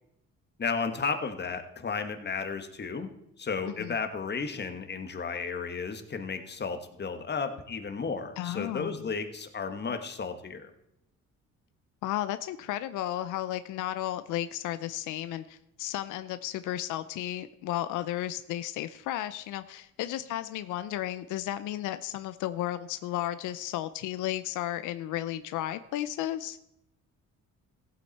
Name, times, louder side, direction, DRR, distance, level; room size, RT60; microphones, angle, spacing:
voice 1, 0.6-3.1 3.4-10.7, left 5 dB, 35° left, 7 dB, 1.4 m, -33 dB
voice 2, 8.4-9.1 12.0-26.6, left 13 dB, 90° left, 12 dB, 0.6 m, -33 dB
15.5 x 8.6 x 4.1 m, 0.81 s
cardioid pair, 90°, 30 cm